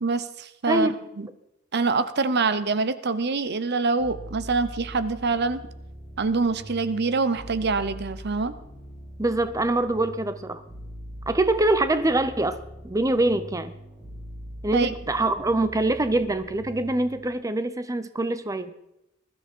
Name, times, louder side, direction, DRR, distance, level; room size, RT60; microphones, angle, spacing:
voice 1, 0.0-0.9 1.2-1.3 1.7-5.6 6.2-8.5 14.7-14.9, right 4 dB, 55° right, 13 dB, 0.8 m, -25 dB
sound 1, 4.0-17.3, equal, 5° left, 6.8 m, -42 dB
voice 2, 9.2-10.6 11.3-12.6 12.8-13.7 14.6-18.7, right 2 dB, 15° right, 11 dB, 0.7 m, -24 dB
21.0 x 13.0 x 4.5 m, 0.86 s
head